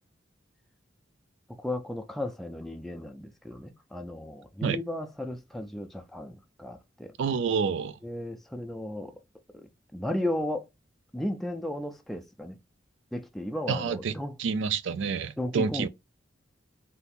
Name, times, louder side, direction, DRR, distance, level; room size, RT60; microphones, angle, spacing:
voice 1, 1.5-7.1 8.0-9.1 9.5-10.7 11.1-12.6 13.1-14.4 15.4-15.9, left 1 dB, ahead, 0.3 m, -35 dB
voice 2, 7.2-7.9 13.7-14.1 14.4-15.9, right 6 dB, 70° right, 0.4 m, -28 dB
2.7 x 2.5 x 3.5 m
head